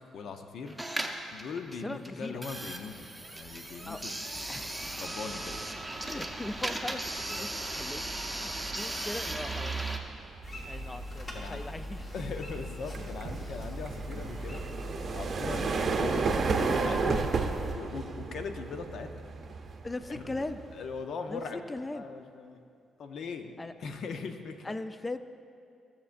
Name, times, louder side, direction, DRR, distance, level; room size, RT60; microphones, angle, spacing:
voice 1, 0.1-0.8 1.3-4.2 5.0-5.6 7.2-7.7 11.3-11.6 12.1-17.3 17.7-19.2 20.1-20.2 20.7-21.7 21.9-22.6 23.0-23.5 23.8-24.7, left 5 dB, 65° left, 6 dB, 0.6 m, -40 dB
sound 1, 0.7-10.0, right 2 dB, 5° right, 0.8 m, -36 dB
voice 2, 1.8-2.4 3.9-4.0 4.5-4.7 6.0-7.5 7.7-8.1 8.4-10.0 10.5-12.1 19.8-20.6 21.3-22.1 23.6-23.7 24.6-25.2, left 2 dB, 20° left, 12 dB, 0.4 m, -39 dB
sound 2, 3.6-3.9 4.3-21.0, right 4 dB, 45° right, 0.6 m, -34 dB
sound 3, 10.4-17.7, left 1 dB, 35° left, 1.4 m, -41 dB
15.0 x 7.1 x 2.6 m, 2.4 s
cardioid pair, 90°, 0 cm